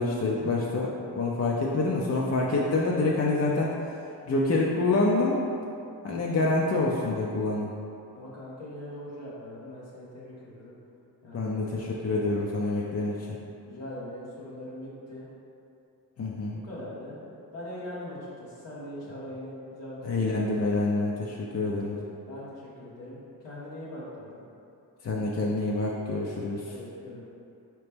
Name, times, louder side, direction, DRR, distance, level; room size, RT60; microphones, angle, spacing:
voice 1, 0.0-3.8 4.3-5.4 6.0-7.7 11.3-13.4 16.2-16.6 20.0-22.0 25.0-26.8, left 2 dB, 35° left, -3 dB, 0.5 m, -27 dB
voice 2, 8.1-10.7 11.2-11.5 13.7-15.3 16.5-20.5 22.3-24.4 26.6-27.2, left 1 dB, 90° left, -9 dB, 0.8 m, -41 dB
4.2 x 2.9 x 3.4 m, 2.7 s
cardioid pair, 45°, 43 cm